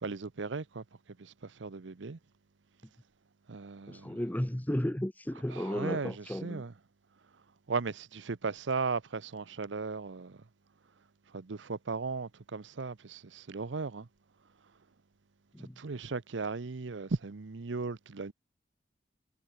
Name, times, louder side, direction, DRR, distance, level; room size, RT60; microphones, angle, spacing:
voice 1, 0.0-0.8 1.2-2.2 3.5-4.2 5.5-6.7 7.7-10.4 11.3-14.1 15.8-18.3, right 4 dB, 80° right, 0.7 m, -36 dB
voice 2, 3.9-6.6 15.5-15.8, equal, 10° left, 0.7 m, -34 dB
head